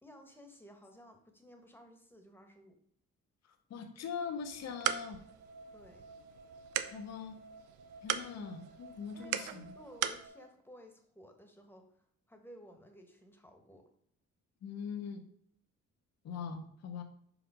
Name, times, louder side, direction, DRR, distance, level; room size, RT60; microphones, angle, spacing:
voice 1, 0.0-2.8 5.7-6.0 9.1-13.9, equal, 5° left, 4 dB, 1.3 m, -56 dB
voice 2, 3.7-5.2 6.9-7.4 8.0-9.6 14.6-15.2 16.2-17.0, left 6 dB, 60° left, 6 dB, 1.0 m, -41 dB
sound 1, 4.4-10.3, right 11 dB, 90° right, 0.5 m, -39 dB
sound 2, 4.5-10.5, right 3 dB, 65° right, 1.9 m, -55 dB
5.0 x 4.9 x 5.0 m, 0.67 s
cardioid pair, 90°, 30 cm